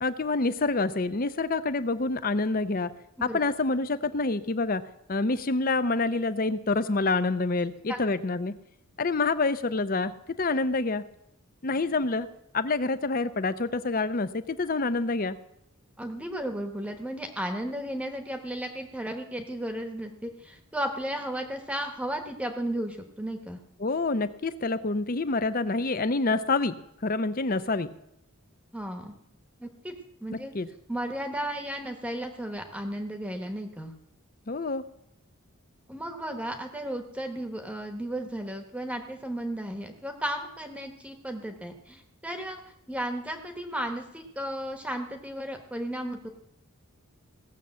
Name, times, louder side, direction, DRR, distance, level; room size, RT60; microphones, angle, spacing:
voice 1, 0.0-2.9 3.2-4.8 5.1-8.5 9.0-10.1 10.4-11.0 11.6-12.3 12.5-15.4 23.8-26.8 27.0-27.9 30.5-30.7 34.5-34.8, left 3 dB, 40° left, 13 dB, 0.6 m, -27 dB
voice 2, 16.0-23.6 28.7-29.1 29.6-30.5 30.9-33.9 35.9-42.6 42.9-46.3, right 1 dB, 5° right, 5 dB, 1.1 m, -34 dB
17.0 x 6.9 x 7.5 m, 0.81 s
head